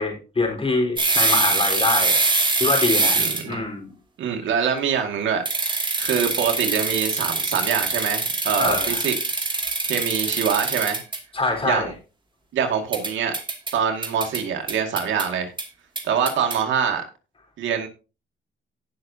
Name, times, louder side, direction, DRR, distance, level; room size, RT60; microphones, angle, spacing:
voice 1, 0.0-2.2 2.6-3.9 8.6-9.0 11.3-11.9, left 3 dB, 30° left, 2 dB, 4.1 m, -24 dB
sound 1, 1.0-3.6 5.5-11.2 12.9-13.7 14.0-14.4 14.7-15.3 15.6-15.7 16.0-16.6, right 3 dB, 25° right, 2.5 m, -23 dB
voice 2, 3.2-3.7 4.2-5.4 5.7-9.2 9.8-11.0 11.6-11.9 12.5-13.3 13.7-15.5 16.0-17.0 17.6-17.9, right 7 dB, 75° right, 3 dB, 2.1 m, -24 dB
18.0 x 6.2 x 2.8 m, 0.32 s
cardioid pair, 90°, 20 cm